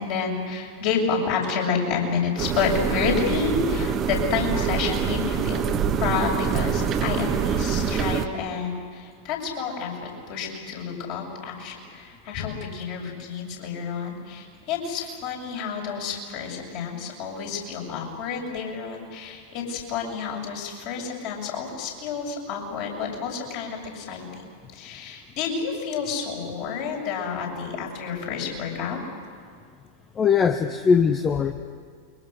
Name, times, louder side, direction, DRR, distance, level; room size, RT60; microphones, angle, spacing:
voice 1, 0.0-5.6 6.0-24.4 24.7-29.0, left 5 dB, 45° left, -1 dB, 7.1 m, -29 dB
sound 1, 2.4-8.3, right 7 dB, 30° right, 1.4 m, -25 dB
voice 2, 30.2-31.5, left 6 dB, 20° left, 9 dB, 0.9 m, -20 dB
29.0 x 24.0 x 6.6 m, 2.1 s
figure-of-eight pair, 90°, 0 cm